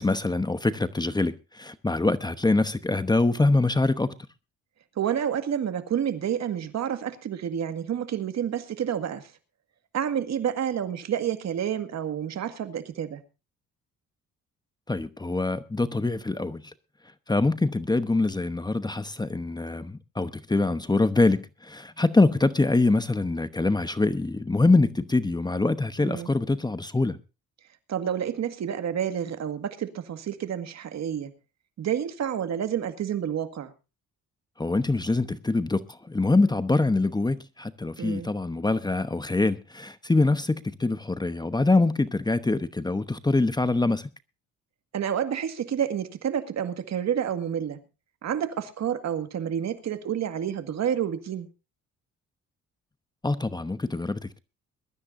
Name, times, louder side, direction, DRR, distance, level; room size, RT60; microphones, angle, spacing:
voice 1, 0.0-4.1 14.9-16.7 17.3-27.2 34.6-44.1 53.2-54.4, left 2 dB, 15° left, 1.0 m, -24 dB
voice 2, 5.0-9.3 9.9-13.2 26.0-26.3 27.9-31.3 31.8-33.7 38.0-38.3 44.9-47.8 48.2-51.5, right 9 dB, 60° right, 1.9 m, -29 dB
22.0 x 13.0 x 2.7 m
cardioid pair, 90°, 30 cm